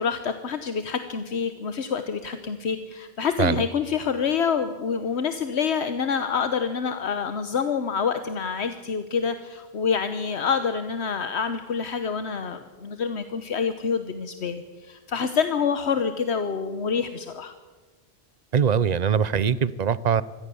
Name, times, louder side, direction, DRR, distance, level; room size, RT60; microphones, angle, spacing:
voice 1, 0.0-17.5, left 6 dB, 75° left, 9 dB, 1.3 m, -27 dB
voice 2, 18.5-20.2, right 7 dB, 45° right, 18 dB, 0.7 m, -22 dB
24.5 x 18.0 x 7.0 m, 1.3 s
omnidirectional pair, 1.1 m